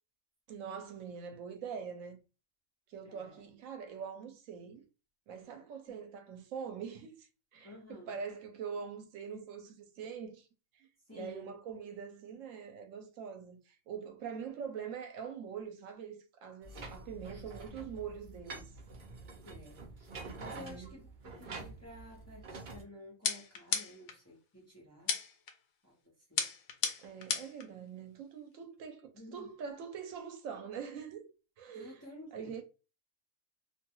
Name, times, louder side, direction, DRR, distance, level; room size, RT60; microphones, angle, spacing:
voice 1, 0.5-2.2 2.9-4.8 5.3-10.5 10.7-18.7 20.5-21.0 27.0-31.3 31.6-32.0 32.3-32.6, right 7 dB, 75° right, 0.9 m, -44 dB
voice 2, 3.0-3.4 7.6-8.2 11.1-11.5 17.3-17.4 19.4-20.1 20.4-21.1 21.4-25.2 25.8-26.0 26.3-26.5 29.1-29.5 31.7-32.5, left 1 dB, 15° left, 0.7 m, -51 dB
sound 1, 16.6-22.8, right 3 dB, 55° right, 0.6 m, -47 dB
sound 2, 23.2-24.2 25.1-25.5 26.4-27.6, left 6 dB, 70° left, 0.9 m, -34 dB
2.6 x 2.2 x 2.9 m
omnidirectional pair, 1.4 m